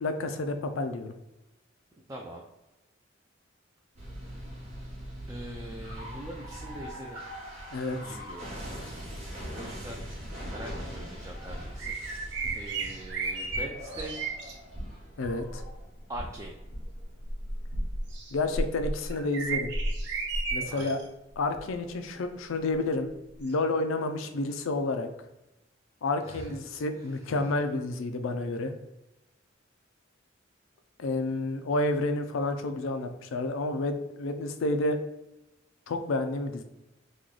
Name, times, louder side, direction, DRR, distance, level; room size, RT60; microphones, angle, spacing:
voice 1, 0.0-1.1 7.7-8.0 15.2-15.6 18.3-19.7 20.5-21.0 21.4-23.1 23.4-25.1 26.0-28.7 31.0-35.0 35.9-36.6, left 2 dB, 85° left, 7 dB, 0.4 m, -30 dB
voice 2, 2.1-2.4 5.3-7.2 8.0-8.5 9.5-10.0 10.5-12.0 12.5-14.2 16.1-16.6 20.7-21.0 26.2-26.6 27.0-27.3, right 1 dB, 15° right, 0 dB, 0.3 m, -42 dB
sound 1, 4.0-18.2, equal, 35° right, 1.0 m, -41 dB
sound 2, 11.8-14.5 15.4-15.7 16.4-21.0 21.5-21.7 23.5-23.6, right 2 dB, 60° right, 0.6 m, -33 dB
3.1 x 2.3 x 3.7 m, 0.97 s
head